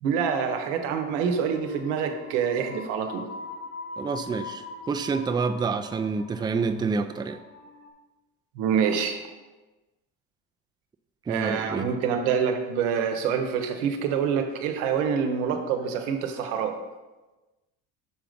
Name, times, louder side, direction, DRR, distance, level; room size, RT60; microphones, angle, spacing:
voice 1, 0.0-3.2 8.6-9.2 11.3-16.8, right 7 dB, 90° right, 6 dB, 0.9 m, -26 dB
sound 1, 0.6-7.9, left 3 dB, 80° left, 1.3 m, -43 dB
voice 2, 4.0-7.4 11.3-11.9, right 4 dB, 15° right, 8 dB, 0.4 m, -28 dB
7.0 x 3.8 x 5.1 m, 1.1 s
supercardioid pair, 90°, 35 cm